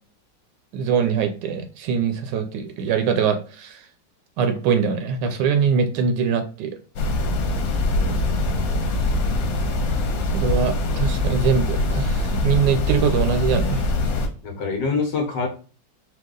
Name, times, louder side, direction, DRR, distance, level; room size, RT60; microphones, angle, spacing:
voice 1, 0.7-3.8 4.4-6.8 10.3-13.8, right 6 dB, 80° right, 7 dB, 1.2 m, -22 dB
sound 1, 7.0-14.3, left 2 dB, 90° left, 1.5 m, -23 dB
voice 2, 7.9-8.6 14.4-15.5, left 4 dB, 70° left, 4 dB, 1.6 m, -26 dB
4.5 x 2.4 x 3.7 m, 0.36 s
omnidirectional pair, 2.0 m